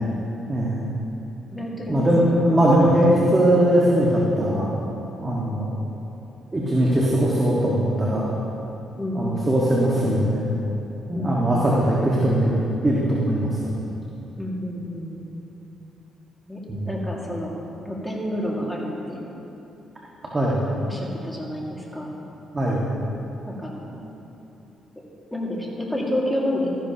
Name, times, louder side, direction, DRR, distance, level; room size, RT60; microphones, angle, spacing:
voice 1, 0.5-0.8 1.9-4.7 5.2-5.6 6.5-8.3 9.1-10.5 11.1-12.6 12.8-13.7 16.7-17.0 20.3-20.6 22.5-22.8, right 1 dB, 25° right, -5 dB, 1.6 m, -20 dB
voice 2, 1.5-2.4 2.9-3.1 9.0-9.3 11.1-12.0 14.4-15.3 16.5-17.6 17.8-19.2 20.8-22.1 23.5-24.0 25.3-26.8, left 1 dB, 5° left, -4 dB, 2.0 m, -30 dB
13.5 x 11.0 x 2.9 m, 2.9 s
cardioid pair, 90°, 0 cm